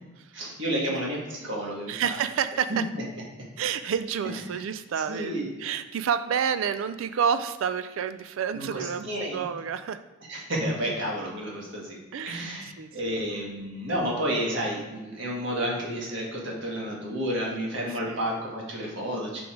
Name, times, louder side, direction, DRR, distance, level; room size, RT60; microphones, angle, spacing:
voice 1, 0.3-2.0 2.7-2.8 4.5-4.6 5.1-5.5 8.5-9.5 10.3-12.0 12.2-19.4, equal, 65° right, -2 dB, 1.7 m, -31 dB
voice 2, 1.9-2.8 3.6-10.0 12.1-12.5 12.8-13.3 18.0-18.3, right 7 dB, 80° right, 12 dB, 0.3 m, -29 dB
5.3 x 4.6 x 5.0 m, 1.1 s
head